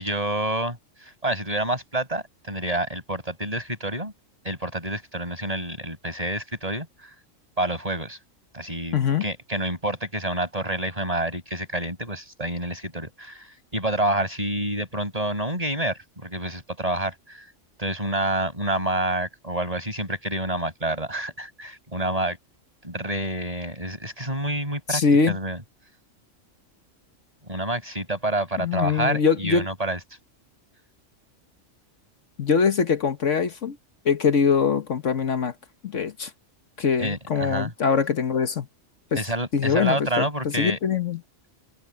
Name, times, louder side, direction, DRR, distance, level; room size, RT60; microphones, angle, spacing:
voice 1, 0.0-4.1 4.4-7.1 7.6-8.2 8.5-17.4 17.8-22.4 22.8-25.0 25.3-25.6 27.4-30.0 37.0-37.7 39.1-40.8, right 1 dB, 30° right, 6.7 m, -28 dB
voice 2, 8.9-9.2 24.9-25.4 28.6-29.7 32.4-33.8 34.0-35.5 35.8-36.3 36.8-38.7 39.1-39.2 39.5-41.2, left 6 dB, 70° left, 1.6 m, -23 dB
omnidirectional pair, 1.4 m